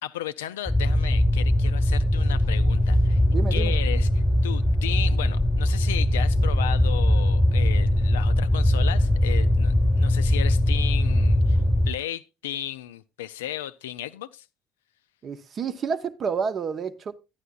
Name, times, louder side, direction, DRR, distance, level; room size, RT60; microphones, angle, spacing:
voice 1, 0.0-3.2 3.5-14.5, left 12 dB, 75° left, 0.4 m, -35 dB
sound 1, 0.7-11.9, left 1 dB, 5° left, 1.1 m, -21 dB
voice 2, 3.3-3.7 15.2-17.1, right 6 dB, 40° right, 0.7 m, -29 dB
12.5 x 10.0 x 2.3 m
figure-of-eight pair, 55°, 0 cm